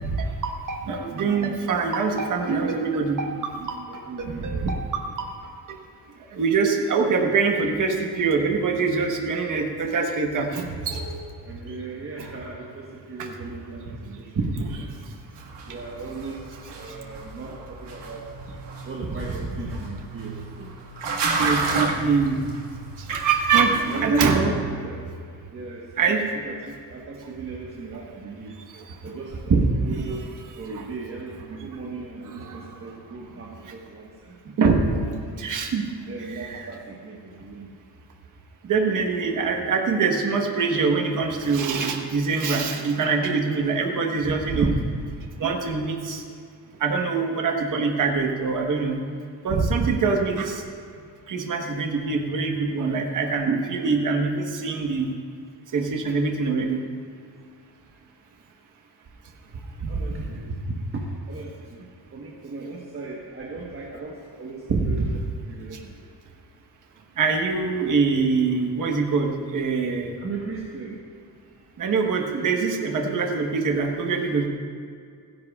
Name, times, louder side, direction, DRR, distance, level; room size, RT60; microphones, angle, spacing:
voice 1, 0.0-5.3 5.7-5.8 6.3-11.3 14.4-14.9 21.4-22.4 23.0-24.5 26.0-26.2 28.7-28.8 29.5-29.6 32.3-32.9 34.6-34.9 35.4-35.8 36.3-36.6 38.6-44.7 45.4-46.2 46.8-49.0 49.4-50.6 51.3-55.1 55.7-56.8 59.8-60.0 64.7-65.1 67.2-70.1 71.8-74.5, right 4 dB, 45° right, 2 dB, 1.4 m, -24 dB
voice 2, 3.9-4.9 11.4-15.0 15.6-18.3 18.8-20.7 23.6-25.1 25.5-28.6 29.0-34.4 34.8-35.4 36.0-37.7 41.4-41.5 59.9-65.1 65.5-66.1 70.2-71.0 71.5-71.6, right 3 dB, 30° right, -2 dB, 1.3 m, -37 dB
sound 1, 15.4-24.0, right 4 dB, 70° right, 1.9 m, -31 dB
29.5 x 10.5 x 2.4 m, 2.2 s
cardioid pair, 165°, 43 cm